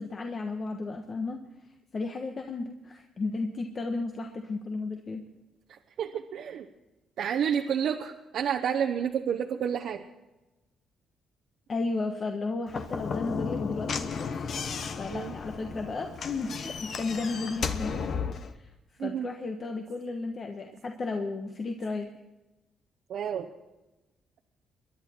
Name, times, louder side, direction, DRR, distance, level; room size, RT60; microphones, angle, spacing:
voice 1, 0.0-1.4 1.9-5.3 11.7-14.5 15.0-17.9 18.5-18.7 19.0-22.1, left 3 dB, 40° left, 4 dB, 1.2 m, -33 dB
voice 2, 5.7-6.7 7.2-10.0 15.1-15.3 19.0-19.3 23.1-23.5, right 8 dB, 70° right, 4 dB, 0.9 m, -30 dB
Slam / Knock, 12.7-18.5, left 6 dB, 55° left, 1.1 m, -34 dB
23.0 x 11.0 x 4.4 m, 1.0 s
cardioid pair, 90°, 0 cm